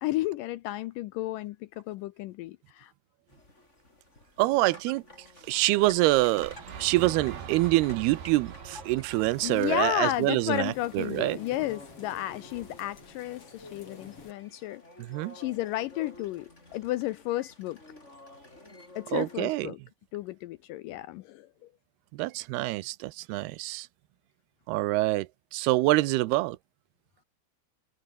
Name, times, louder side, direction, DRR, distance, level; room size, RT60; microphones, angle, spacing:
voice 1, 0.0-2.9 9.4-14.8 15.3-17.8 19.0-19.8 20.1-21.5, left 15 dB, 80° left, 2.0 m, -32 dB
sound 1, 3.3-19.6, left 2 dB, 15° left, 6.0 m, -51 dB
voice 2, 4.4-5.0 5.5-11.4 15.0-15.4 19.1-19.8 22.1-23.9 24.7-26.6, right 19 dB, 90° right, 2.8 m, -26 dB
sound 2, 5.5-11.6, right 8 dB, 75° right, 4.8 m, -44 dB
sound 3, 9.1-14.3, left 4 dB, 35° left, 4.7 m, -50 dB
omnidirectional pair, 4.4 m